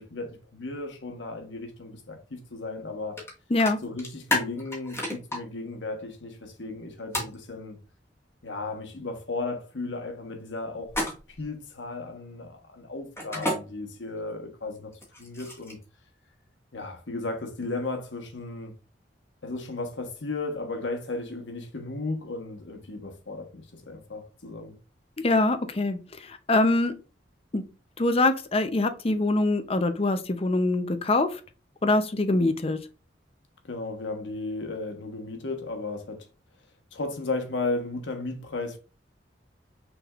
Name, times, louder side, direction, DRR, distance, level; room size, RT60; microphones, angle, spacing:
voice 1, 0.0-3.2 3.8-7.8 8.4-10.9 11.3-14.9 15.2-15.8 16.7-18.7 19.4-24.7 33.6-36.3 36.9-38.8, left 3 dB, 85° left, 1.2 m, -35 dB
sound 1, 3.2-3.3 3.6-5.4 7.1-7.3 10.9-11.4 13.2-13.6 14.9-15.8, left 1 dB, 15° left, 1.7 m, -30 dB
voice 2, 25.2-27.0 27.5-27.6 28.0-31.4 31.8-32.8, left 2 dB, 35° left, 0.6 m, -24 dB
6.0 x 3.5 x 2.4 m
head